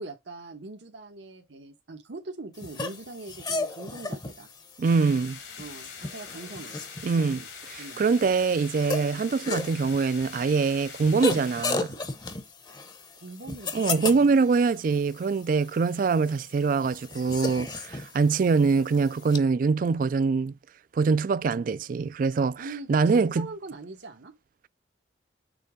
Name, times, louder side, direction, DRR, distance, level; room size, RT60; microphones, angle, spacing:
voice 1, 0.0-4.5 5.6-6.8 7.0-7.5 7.8-8.0 8.9-9.2 13.1-14.4 22.6-24.3, right 2 dB, 85° right, 1.2 m, -42 dB
sound 1, 2.6-19.4, left 3 dB, 25° left, 0.8 m, -36 dB
sound 2, 4.8-11.6, left 6 dB, 75° left, 2.1 m, -43 dB
voice 2, 4.8-5.4 7.0-7.4 7.7-12.0 13.7-20.5 20.9-23.5, right 4 dB, 50° right, 0.3 m, -24 dB
6.8 x 3.3 x 4.9 m
head